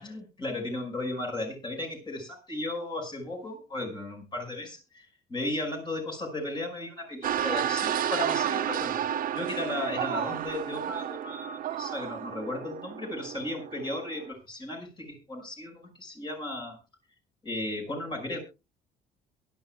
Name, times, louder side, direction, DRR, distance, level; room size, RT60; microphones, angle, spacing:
voice 1, 0.0-9.0 9.3-16.8 17.4-18.4, left 2 dB, 25° left, 2 dB, 5.4 m, -35 dB
sound 1, 7.2-14.3, right 10 dB, 55° right, 1.1 m, -31 dB
23.0 x 11.5 x 2.3 m, 0.27 s
cardioid pair, 110°, 17 cm